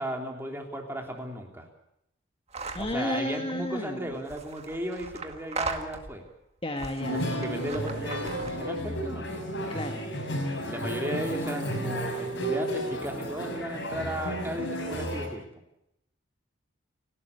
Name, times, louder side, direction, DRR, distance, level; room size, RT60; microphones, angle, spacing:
voice 1, 0.0-1.7 2.8-6.2 7.1-9.4 10.6-15.4, right 1 dB, 10° right, 2 dB, 3.3 m, -35 dB
sound 1, 2.5-3.0 4.1-6.3 6.8-8.7, right 4 dB, 30° right, 1.9 m, -38 dB
voice 2, 2.7-4.2 6.6-7.3 9.7-10.0, left 1 dB, 25° left, 5 dB, 1.6 m, -32 dB
sound 2, 7.0-15.3, equal, 60° left, 6.2 m, -32 dB
29.5 x 12.5 x 8.3 m, 0.81 s
head